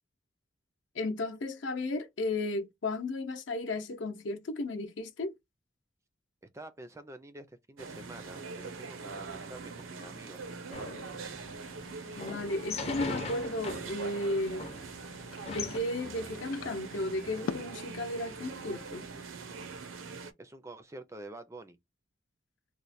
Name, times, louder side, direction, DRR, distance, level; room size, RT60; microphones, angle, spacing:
voice 1, 0.9-5.3 12.2-14.7 15.5-19.1, left 2 dB, 70° left, 0.7 m, -34 dB
voice 2, 6.5-10.9 20.4-21.8, right 2 dB, 15° right, 0.4 m, -48 dB
sound 1, 7.8-20.3, right 4 dB, 85° right, 0.6 m, -43 dB
sound 2, 10.7-15.8, left 3 dB, 35° left, 0.6 m, -41 dB
sound 3, 14.1-19.2, left 6 dB, 85° left, 0.3 m, -46 dB
3.1 x 2.1 x 4.1 m
head